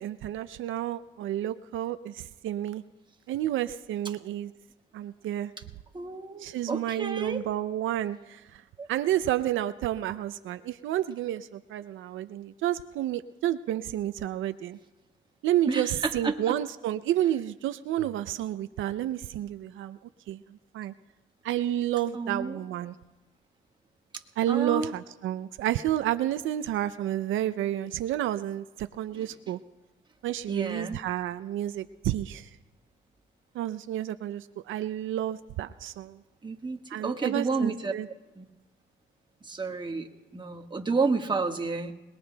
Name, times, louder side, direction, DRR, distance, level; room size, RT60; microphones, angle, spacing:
voice 1, 0.0-2.8 3.3-4.5 4.9-5.5 6.4-8.6 8.9-14.8 15.4-20.0 20.3-20.4 20.7-20.9 21.4-22.9 24.4-29.6 30.2-32.5 33.5-36.2 36.9-38.1, right 12 dB, 80° right, 12 dB, 0.5 m, -30 dB
voice 2, 5.9-7.5 8.8-8.9 15.7-16.5 22.1-22.6 24.5-24.9 29.1-29.3 30.5-31.0 36.4-37.9 38.3-38.4 39.4-41.9, right 4 dB, 25° right, 3 dB, 1.4 m, -31 dB
28.5 x 20.5 x 2.3 m, 1.1 s
cardioid pair, 90°, 20 cm